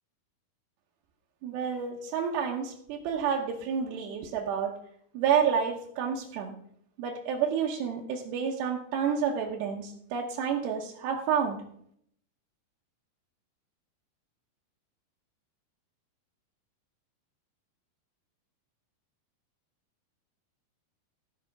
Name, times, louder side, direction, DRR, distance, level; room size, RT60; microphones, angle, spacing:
voice 1, 1.4-4.7 5.1-6.6 7.0-11.6, right 7 dB, 85° right, -1 dB, 3.2 m, -29 dB
15.0 x 5.7 x 5.9 m, 0.67 s
omnidirectional pair, 4.7 m